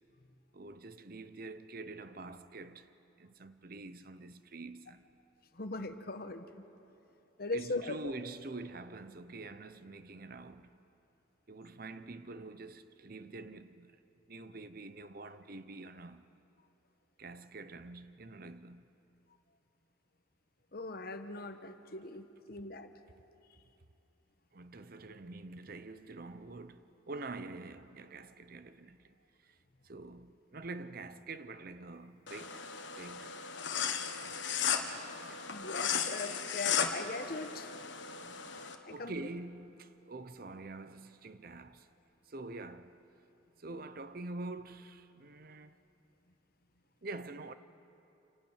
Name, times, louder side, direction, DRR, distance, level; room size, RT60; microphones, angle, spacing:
voice 1, 0.5-2.9 3.2-5.0 7.5-10.8 11.5-14.0 14.3-16.3 17.2-18.9 24.5-29.1 29.4-29.6 29.8-32.7 33.0-33.4 33.8-35.0 35.3-35.4 38.2-38.6 38.9-41.9 42.3-43.0 43.6-45.8 47.0-47.5, right 2 dB, 45° right, 0.8 m, -46 dB
voice 2, 5.6-6.4 7.4-8.1 20.7-22.9 35.5-37.7 38.8-39.1, left 2 dB, 50° left, 1.1 m, -40 dB
sound 1, 32.3-38.7, left 7 dB, 65° left, 1.4 m, -36 dB
28.0 x 12.0 x 9.1 m
head